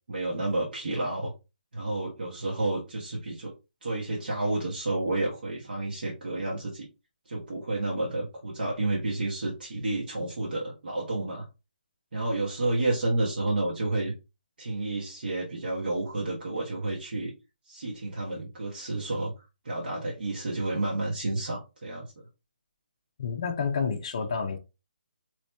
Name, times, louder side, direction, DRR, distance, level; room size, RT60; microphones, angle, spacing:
voice 1, 0.1-1.3 1.7-3.5 3.8-6.9 7.2-11.5 12.1-14.1 14.6-17.3 17.7-19.3 19.6-22.1, right 2 dB, 70° right, 1.3 m, -30 dB
voice 2, 23.2-24.6, left 5 dB, 30° left, 0.4 m, -29 dB
3.0 x 2.8 x 3.3 m
hypercardioid pair, 175°, 5 cm